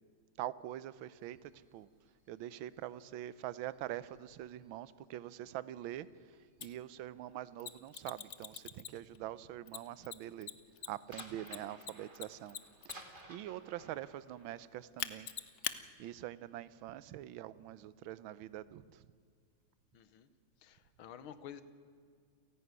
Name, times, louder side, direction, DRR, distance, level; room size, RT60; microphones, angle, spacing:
voice 1, 0.4-1.9 2.3-6.1 6.6-10.5 10.9-12.6 13.3-15.3 16.0-19.0, right 13 dB, 75° right, 17 dB, 1.5 m, -44 dB
sound 1, 1.0-4.9 5.2-8.6 8.9-9.3 9.6-16.0, right 1 dB, 25° right, 2.3 m, -58 dB
Mechanisms, 6.6-6.7 7.6-9.2 9.7-13.2 15.0-15.8, left 9 dB, 60° left, 0.7 m, -42 dB
voice 2, 19.9-20.3 20.6-21.6, left 9 dB, 75° left, 13 dB, 1.9 m, -50 dB
29.0 x 11.5 x 9.5 m, 2.1 s
omnidirectional pair, 2.3 m